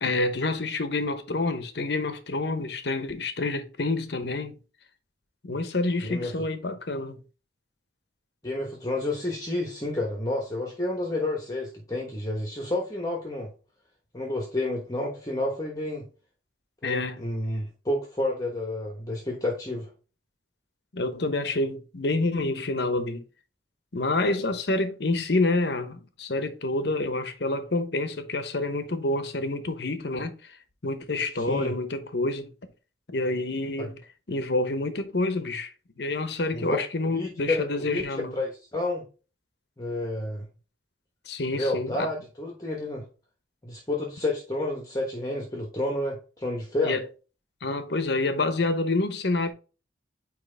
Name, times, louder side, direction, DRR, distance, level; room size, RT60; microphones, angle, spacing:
voice 1, 0.0-4.6 5.4-7.2 16.8-17.2 20.9-23.2 23.9-30.6 30.8-32.5 33.1-34.0 34.3-35.7 36.0-38.4 41.3-42.1 46.8-47.0 47.6-49.5, left 2 dB, 65° left, 0.9 m, -28 dB
voice 2, 6.0-6.3 8.4-13.5 14.1-16.1 16.8-19.9 31.4-31.7 33.8-33.9 36.5-36.8 37.0-38.1 38.4-39.0 39.8-40.5 41.5-43.0 43.6-47.0, left 1 dB, 20° left, 1.1 m, -30 dB
9.2 x 3.1 x 3.3 m
head